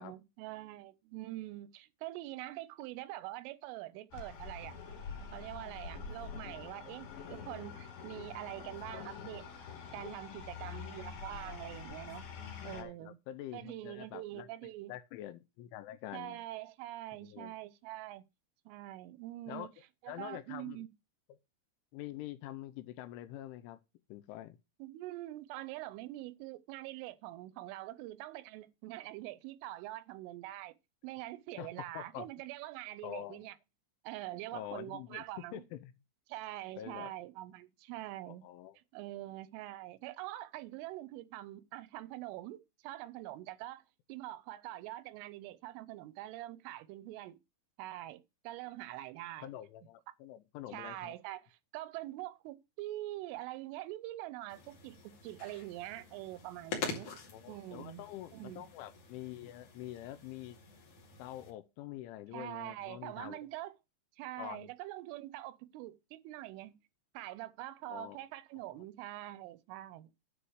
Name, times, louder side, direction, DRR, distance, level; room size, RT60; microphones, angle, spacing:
voice 1, 0.0-4.8 5.3-9.5 9.9-12.2 12.6-13.2 13.5-14.9 16.1-18.2 18.7-19.7 20.0-20.9 24.8-30.7 31.0-33.6 34.0-35.6 36.3-38.5 38.9-43.8 44.1-47.4 47.8-49.5 50.7-51.4 51.7-57.1 57.5-58.1 58.3-58.7 62.3-63.7 64.2-66.8 67.1-70.1, right 16 dB, 85° right, 3.1 m, -44 dB
sound 1, 4.1-12.8, left 6 dB, 65° left, 3.9 m, -46 dB
voice 2, 12.7-14.5 14.9-16.4 17.2-17.5 19.5-19.7 20.1-20.9 21.3-21.4 21.9-23.8 24.1-24.6 31.6-32.3 33.0-33.4 34.5-35.9 36.8-37.1 38.3-38.8 49.4-51.1 57.0-60.6 61.2-63.4 64.4-64.7 67.9-68.2 68.7-68.8, left 13 dB, 80° left, 3.1 m, -46 dB
sound 2, 54.5-61.5, left 4 dB, 45° left, 2.9 m, -46 dB
10.0 x 5.0 x 6.4 m
omnidirectional pair, 5.8 m